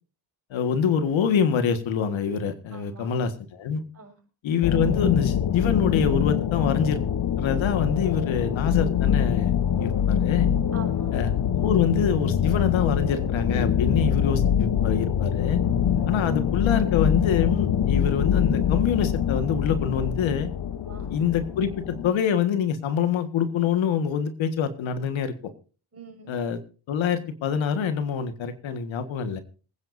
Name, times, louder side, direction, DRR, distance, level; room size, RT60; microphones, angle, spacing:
voice 1, 0.5-3.8 4.4-7.0 7.4-9.5 9.8-10.5 11.1-11.3 11.6-15.6 16.1-20.5 21.1-25.3 26.3-26.6 26.9-29.4, left 7 dB, 75° left, 9 dB, 1.7 m, -25 dB
voice 2, 2.7-3.1 3.9-4.1 10.7-11.1 15.9-16.1 20.8-21.1 25.9-26.3, right 5 dB, 30° right, 2 dB, 6.5 m, -44 dB
sound 1, 4.6-22.1, left 9 dB, 50° left, 1.1 m, -24 dB
25.5 x 9.6 x 2.7 m, 0.36 s
cardioid pair, 90°, 47 cm